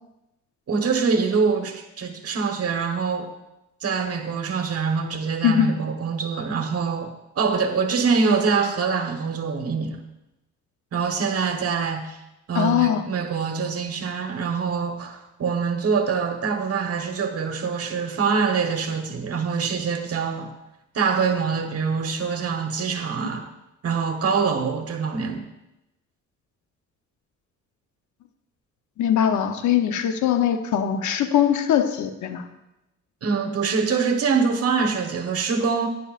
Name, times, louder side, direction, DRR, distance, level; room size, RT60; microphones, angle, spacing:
voice 1, 0.7-3.3 3.8-10.0 10.9-12.2 12.5-20.5 20.9-23.5 23.8-25.5 33.2-35.9, right 5 dB, 50° right, 5 dB, 1.3 m, -24 dB
voice 2, 12.5-13.0 29.0-32.5, left 9 dB, 70° left, 8 dB, 0.9 m, -21 dB
11.0 x 9.7 x 2.5 m, 0.94 s
cardioid pair, 90°, 30 cm